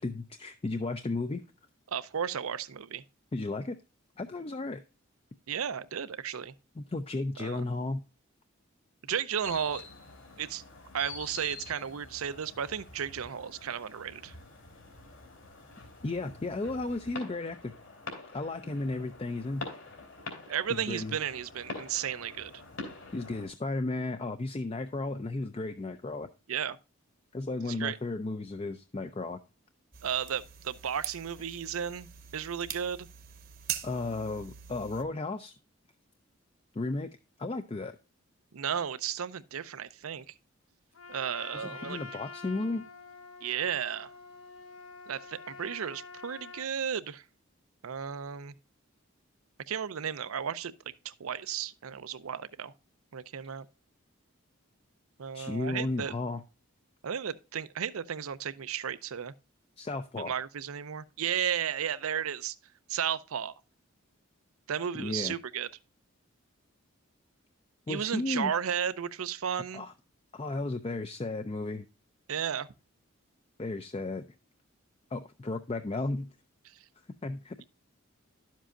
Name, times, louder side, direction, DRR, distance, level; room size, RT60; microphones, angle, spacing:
voice 1, 0.0-1.4 3.3-3.8 4.2-4.8 6.8-8.0 16.0-17.7 18.3-19.7 20.9-21.2 23.1-26.3 27.3-29.4 33.8-35.5 36.7-37.1 37.4-37.9 41.5-42.9 55.3-56.4 59.8-60.3 65.0-65.4 67.9-68.5 69.5-69.9 70.3-71.8 73.6-74.3 75.1-76.3 77.2-77.6, left 2 dB, 25° left, 0.4 m, -34 dB
voice 2, 1.9-3.0 5.5-6.5 7.4-7.6 9.0-9.8 10.4-10.6 10.9-14.4 20.5-22.5 26.5-26.8 27.6-28.0 30.0-32.1 32.3-33.1 38.5-40.2 41.1-42.0 43.4-44.1 45.1-47.2 47.8-48.5 49.7-50.7 51.0-52.7 53.1-53.7 55.2-56.1 57.0-59.3 60.2-62.5 62.9-63.5 64.7-65.7 67.9-69.8 72.3-72.7, right 8 dB, 85° right, 0.6 m, -34 dB
sound 1, 9.4-23.5, left 3 dB, 65° left, 3.1 m, -46 dB
sound 2, 29.9-35.0, right 10 dB, 45° right, 0.9 m, -43 dB
Trumpet, 40.9-46.7, left 4 dB, 85° left, 1.2 m, -47 dB
11.0 x 7.4 x 2.5 m
head